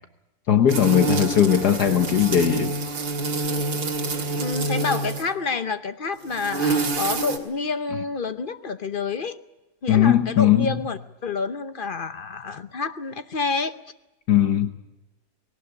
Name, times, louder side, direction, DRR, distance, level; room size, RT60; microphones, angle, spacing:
voice 1, 0.5-2.7 9.9-10.8 14.3-14.7, left 10 dB, 65° left, 8 dB, 1.6 m, -19 dB
sound 1, 0.7-5.3 6.2-7.4, right 3 dB, 90° right, 3.0 m, -26 dB
voice 2, 4.3-9.4 9.8-13.8, left 4 dB, 45° left, 11 dB, 0.7 m, -28 dB
20.0 x 18.5 x 9.9 m, 1.0 s
omnidirectional pair, 1.9 m